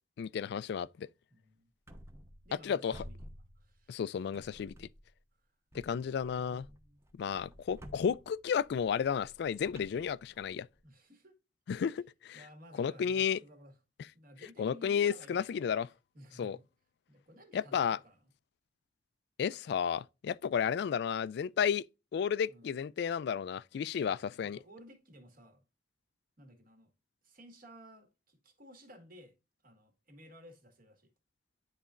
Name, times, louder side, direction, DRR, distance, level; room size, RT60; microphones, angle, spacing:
voice 1, 0.2-1.1 2.6-2.9 3.9-4.9 5.7-6.7 7.2-10.7 11.7-12.4 12.8-13.4 14.6-15.9 16.4-16.6 17.5-18.0 19.4-21.9 22.1-24.6, left 7 dB, 65° left, 0.3 m, -32 dB
voice 2, 1.3-1.7 2.4-3.2 3.5-4.0 5.3-5.5 6.2-7.0 10.8-11.3 12.3-13.8 14.1-15.6 16.1-16.6 17.1-18.3 22.5-22.7 23.9-25.6 26.4-26.9 27.2-29.4 29.6-31.1, equal, 50° right, 1.8 m, -56 dB
sound 1, 1.9-2.6 2.9-4.0 4.3-5.2 5.7-10.8, equal, 15° right, 0.9 m, -53 dB
10.5 x 4.1 x 2.5 m
head